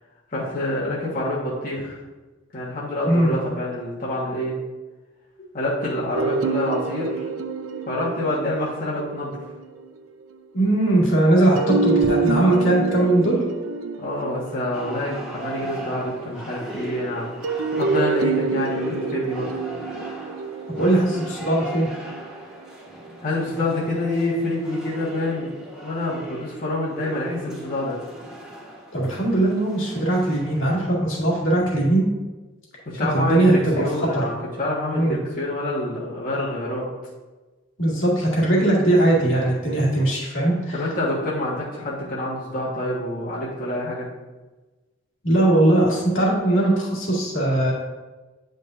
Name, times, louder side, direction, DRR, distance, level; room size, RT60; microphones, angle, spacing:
voice 1, 0.3-2.0 2.5-4.6 5.5-7.3 7.9-9.4 14.0-17.3 17.7-19.5 23.2-25.5 25.8-28.0 32.8-36.9 40.7-44.1, left 1 dB, 45° left, -7 dB, 1.5 m, -27 dB
sound 1, 6.1-10.0 11.6-16.0 17.4-22.6, right 4 dB, 85° right, 0.5 m, -27 dB
voice 2, 10.5-13.4 20.7-21.9 28.9-32.1 33.1-33.8 34.1-34.2 34.9-35.2 37.8-40.8 45.2-47.7, right 1 dB, 80° left, -4 dB, 2.1 m, -20 dB
sound 2, 14.7-30.8, right 1 dB, 5° right, 1.2 m, -37 dB
9.0 x 5.2 x 2.6 m, 1.2 s
head